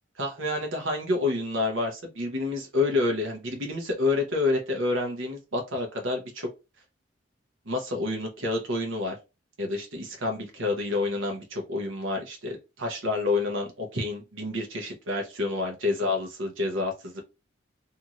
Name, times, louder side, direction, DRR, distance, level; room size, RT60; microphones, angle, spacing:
voice 1, 0.2-6.5 7.7-9.2 9.6-17.2, left 2 dB, 90° right, 2 dB, 0.9 m, -28 dB
2.7 x 2.5 x 2.8 m, 0.27 s
head